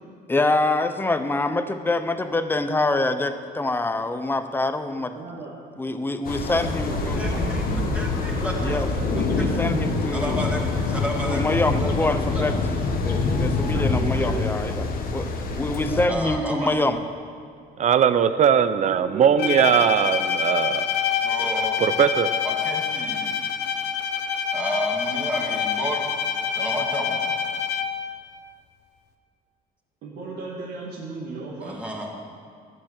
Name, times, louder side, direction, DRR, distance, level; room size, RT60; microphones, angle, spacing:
voice 1, 0.3-5.4 5.8-7.2 8.6-8.9 9.1-10.4 11.3-12.5 13.0-14.8 15.1-17.0, left 2 dB, 10° left, 9 dB, 0.8 m, -25 dB
voice 2, 5.1-5.5 6.4-7.9 8.3-10.0 13.7-14.6 18.8-19.8 30.0-31.8, right 4 dB, 75° right, -5 dB, 2.1 m, -35 dB
sound 1, 6.3-16.1, left 3 dB, 60° left, 1.4 m, -25 dB
voice 3, 7.1-8.8 10.1-11.9 12.2-12.6 15.9-16.9 21.1-21.8 22.4-23.3 24.5-26.1 26.5-27.2 31.6-32.1, equal, 5° right, -2 dB, 2.3 m, -31 dB
voice 4, 17.8-20.9 21.8-22.3, right 8 dB, 45° right, 12 dB, 0.6 m, -20 dB
Bowed string instrument, 19.4-28.1, left 7 dB, 85° left, 1.0 m, -26 dB
13.5 x 9.0 x 6.6 m, 2.2 s
cardioid pair, 110°, 17 cm